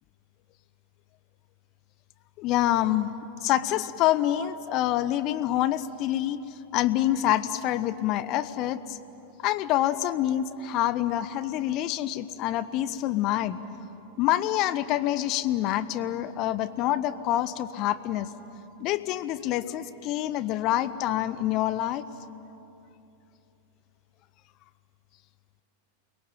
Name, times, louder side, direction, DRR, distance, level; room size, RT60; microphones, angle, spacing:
voice 1, 2.4-3.1 3.4-6.4 6.7-9.0 9.4-13.6 14.2-18.3 18.8-22.0, left 13 dB, 40° left, 15 dB, 1.0 m, -26 dB
28.5 x 22.0 x 9.2 m, 3.0 s
figure-of-eight pair, 90°, 0 cm